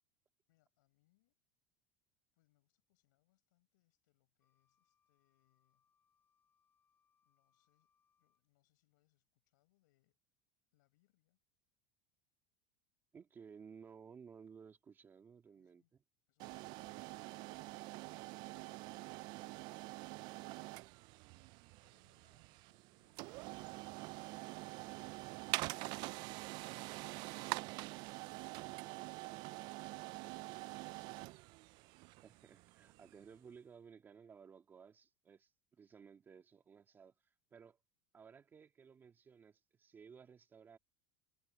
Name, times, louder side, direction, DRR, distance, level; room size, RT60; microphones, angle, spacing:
voice 1, 0.5-1.4 2.3-5.9 7.2-7.9 8.2-10.2 10.7-11.4 15.5-15.9 16.3-19.7 21.3-26.4 27.0-31.3, left 20 dB, 80° left, 6.8 m, -82 dB
Wind instrument woodwind instrument, 4.4-8.5, left 7 dB, 20° left, 7.6 m, -82 dB
voice 2, 13.1-15.8 32.2-37.8 38.1-40.8, right 6 dB, 20° right, 2.3 m, -58 dB
sound 1, 16.4-33.3, right 22 dB, 45° right, 0.3 m, -46 dB
supercardioid pair, 150°, 10 cm